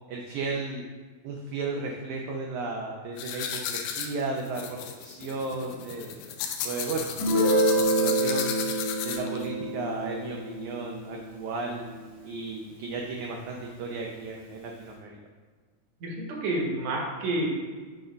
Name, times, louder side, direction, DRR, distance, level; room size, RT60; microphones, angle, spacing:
voice 1, 0.1-0.9 1.2-6.2 6.6-7.1 7.6-8.5 9.0-11.8 12.2-15.2, right 3 dB, 80° right, 0 dB, 1.7 m, -34 dB
sound 1, 3.2-9.5, left 8 dB, 80° left, 2.1 m, -34 dB
Guitar, 7.2-12.7, right 1 dB, 15° right, 0.6 m, -28 dB
voice 2, 16.0-17.5, right 1 dB, 60° right, -1 dB, 2.2 m, -29 dB
8.1 x 3.8 x 5.1 m, 1.5 s
omnidirectional pair, 4.2 m